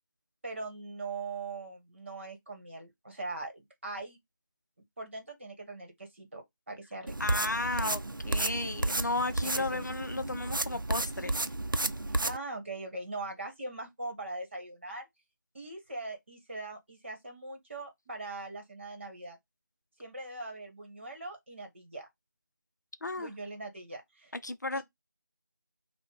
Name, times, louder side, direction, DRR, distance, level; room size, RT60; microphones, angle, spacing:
voice 1, 0.4-4.2 5.0-7.2 9.4-9.8 12.2-15.1 15.5-19.4 20.0-22.1 23.2-24.3 24.7-24.8, right 2 dB, 35° right, 1.3 m, -41 dB
sound 1, 7.1-12.4, right 2 dB, 85° right, 0.5 m, -32 dB
voice 2, 7.2-11.3 23.0-23.3 24.4-24.8, left 2 dB, 60° left, 0.5 m, -34 dB
5.4 x 2.2 x 3.8 m
figure-of-eight pair, 165°, 11 cm